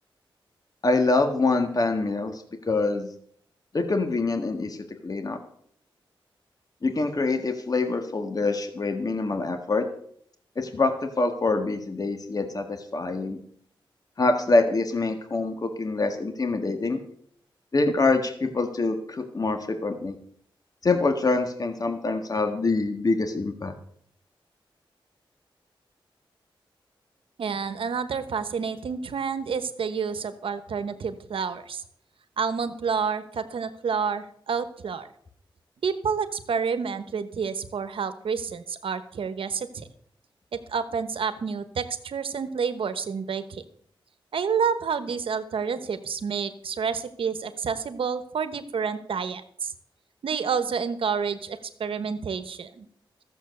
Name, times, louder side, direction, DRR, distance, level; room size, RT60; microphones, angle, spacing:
voice 1, 0.8-3.1 3.7-4.8 5.0-5.4 6.8-9.8 10.5-13.4 14.2-17.0 17.7-20.1 20.8-23.7, left 3 dB, 45° left, 6 dB, 1.6 m, -25 dB
voice 2, 27.4-31.8 32.4-35.1 35.8-39.9 40.5-43.6 44.3-49.7 50.2-52.9, right 6 dB, 85° right, 11 dB, 1.1 m, -29 dB
14.0 x 7.3 x 6.8 m, 0.65 s
wide cardioid pair, 80°, 9 cm